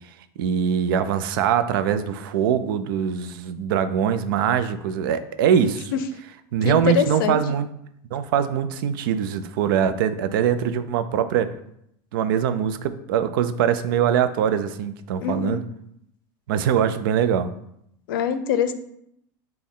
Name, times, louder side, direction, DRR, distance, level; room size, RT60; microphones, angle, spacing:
voice 1, 0.4-5.9 6.5-7.7 8.1-11.5 12.1-15.6 16.5-17.5, right 8 dB, 85° right, 11 dB, 0.4 m, -22 dB
voice 2, 6.6-7.4 15.2-15.6 18.1-18.7, left 8 dB, 90° left, 10 dB, 0.5 m, -23 dB
6.2 x 2.2 x 3.6 m, 0.75 s
supercardioid pair, 160°, 11 cm